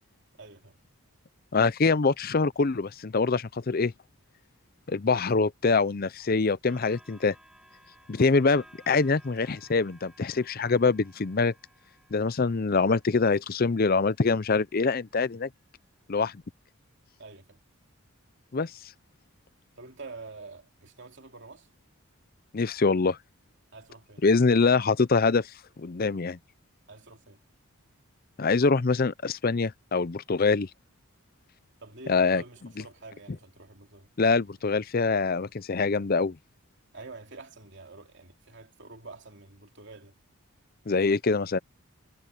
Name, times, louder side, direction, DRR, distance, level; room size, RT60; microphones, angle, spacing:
voice 1, 0.3-0.7 17.2-17.6 19.8-21.7 23.7-24.2 26.9-27.4 31.8-34.1 36.9-40.1, right 3 dB, 55° right, 3.0 m, -47 dB
voice 2, 1.5-3.9 4.9-7.3 8.1-11.5 12.1-15.5 16.1-16.3 18.5-18.7 22.5-23.2 24.2-26.4 28.4-30.7 32.1-32.4 34.2-36.4 40.9-41.6, left 4 dB, 40° left, 0.5 m, -24 dB
sound 1, 6.7-14.1 14.9-15.1, right 1 dB, 5° right, 4.2 m, -58 dB
head